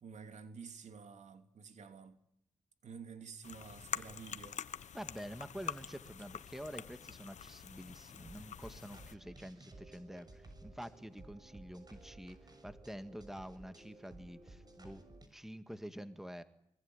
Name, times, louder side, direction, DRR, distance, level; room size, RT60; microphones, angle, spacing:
voice 1, 0.0-2.2 2.8-4.6, right 5 dB, 70° right, 3.0 m, -50 dB
sound 1, 3.4-9.1, left 8 dB, 70° left, 1.3 m, -46 dB
voice 2, 4.9-15.0 15.3-16.4, equal, 5° right, 2.0 m, -48 dB
sound 2, 7.9-15.3, right 2 dB, 35° right, 6.9 m, -56 dB
24.0 x 23.5 x 10.0 m
cardioid pair, 85°, 13 cm